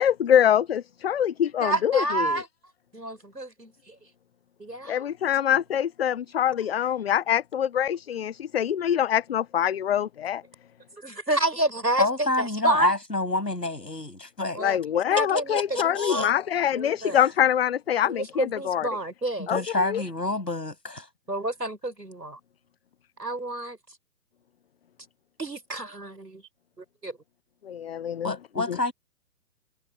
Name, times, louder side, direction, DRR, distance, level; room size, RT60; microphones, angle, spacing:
voice 1, 0.0-2.4 4.9-10.4 14.6-18.9 19.5-20.0 27.6-28.3 28.7-28.8, left 10 dB, 40° left, 0.9 m, -24 dB
voice 2, 1.6-2.4 2.9-3.9 4.6-5.0 11.0-12.9 14.6-14.8 15.1-16.3 16.7-17.2 18.0-19.5 21.3-22.4 23.2-23.8 25.4-26.4 27.0-27.2, right 2 dB, 85° right, 5.3 m, -29 dB
voice 3, 12.0-14.6 15.5-16.3 19.4-21.1 28.2-28.9, left 2 dB, 80° left, 7.0 m, -28 dB
figure-of-eight pair, 130°, 48 cm